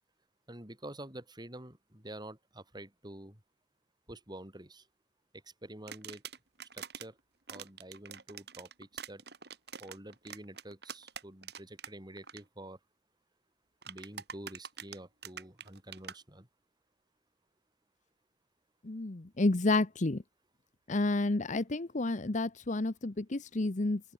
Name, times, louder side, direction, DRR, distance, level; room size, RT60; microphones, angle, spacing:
voice 1, 0.5-3.4 4.1-4.9 5.3-6.2 6.7-7.2 7.5-9.2 9.8-12.8 13.9-16.5, right 1 dB, 25° right, 4.5 m, -48 dB
sound 1, 5.9-7.1 7.5-11.9 12.2-12.4 13.8-16.2, right 7 dB, 65° right, 7.4 m, -45 dB
voice 2, 18.8-20.2 20.9-24.0, left 2 dB, 45° left, 0.9 m, -30 dB
open air
head